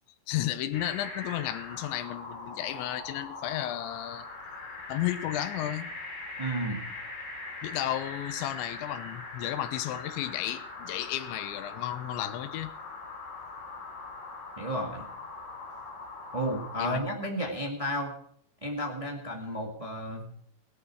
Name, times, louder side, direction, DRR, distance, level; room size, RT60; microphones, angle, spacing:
voice 1, 0.3-4.3 4.9-5.9 7.6-12.7 16.8-17.1, left 13 dB, 85° left, 11 dB, 3.3 m, -33 dB
sound 1, 0.7-17.0, left 3 dB, 50° left, 5.5 m, -41 dB
voice 2, 6.4-6.8 14.6-15.1 16.3-18.1 18.6-20.3, equal, 55° right, 0 dB, 0.3 m, -32 dB
17.5 x 11.0 x 4.7 m, 0.67 s
omnidirectional pair, 5.1 m